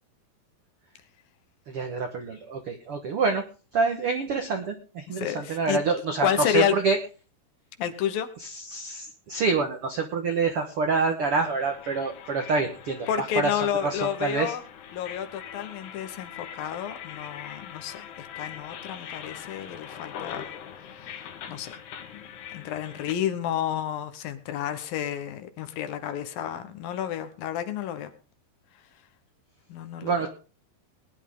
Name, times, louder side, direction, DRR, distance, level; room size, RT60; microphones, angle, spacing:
voice 1, 1.7-3.4 3.7-7.0 8.4-14.5 30.0-30.3, right 4 dB, 70° right, 4 dB, 1.3 m, -27 dB
voice 2, 5.1-5.8 6.2-6.7 7.8-8.3 13.1-14.6 14.9-20.4 20.9-21.7 22.1-22.2 22.5-28.1 29.7-30.2, left 9 dB, 70° left, 9 dB, 2.7 m, -30 dB
sound 1, 11.2-23.1, left 9 dB, 90° left, 3.6 m, -42 dB
20.0 x 10.5 x 3.7 m, 0.35 s
omnidirectional pair, 4.6 m